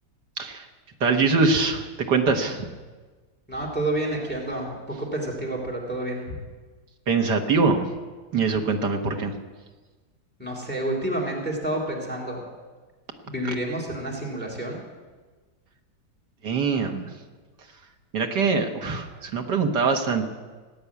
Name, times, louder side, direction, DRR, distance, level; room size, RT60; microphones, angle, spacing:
voice 1, 0.4-0.7 1.0-2.7 7.1-7.9 8.3-9.4 16.4-17.2 17.6-17.8 18.1-20.3, right 4 dB, 65° right, 4 dB, 2.0 m, -23 dB
voice 2, 3.5-6.4 10.4-12.4 13.3-14.8, right 1 dB, 5° left, 0 dB, 2.8 m, -29 dB
18.0 x 9.5 x 8.4 m, 1.3 s
omnidirectional pair, 2.0 m